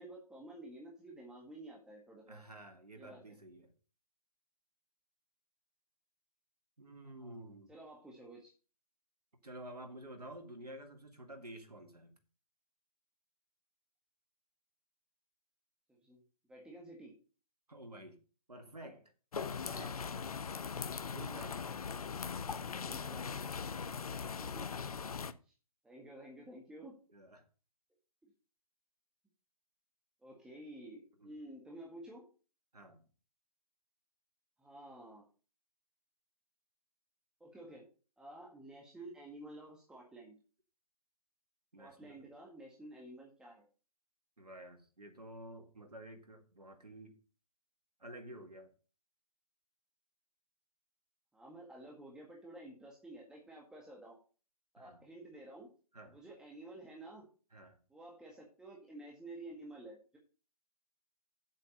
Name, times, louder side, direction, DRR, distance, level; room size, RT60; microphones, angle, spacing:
voice 1, 0.0-2.4 2.9-3.4 7.0-8.5 15.9-16.2 16.5-17.1 22.4-23.5 24.4-25.2 25.4-25.5 25.8-26.9 28.2-28.3 30.2-32.2 34.6-35.2 37.4-37.9 38.2-40.4 41.8-43.7 51.3-54.2 54.7-55.7 56.1-57.3 57.9-60.2, right 1 dB, 5° right, 1.7 m, -52 dB
voice 2, 2.3-3.7 6.8-7.7 9.4-12.1 17.7-18.2 18.5-20.0 21.1-21.6 27.1-27.5 31.2-31.3 32.7-33.0 41.7-42.3 44.4-47.2 48.0-48.7 54.8-55.0 55.9-56.2 57.5-57.8, right 1 dB, 85° right, 2.0 m, -51 dB
sound 1, 19.3-25.3, left 6 dB, 70° left, 0.8 m, -40 dB
7.8 x 7.6 x 5.3 m
figure-of-eight pair, 135°, 20 cm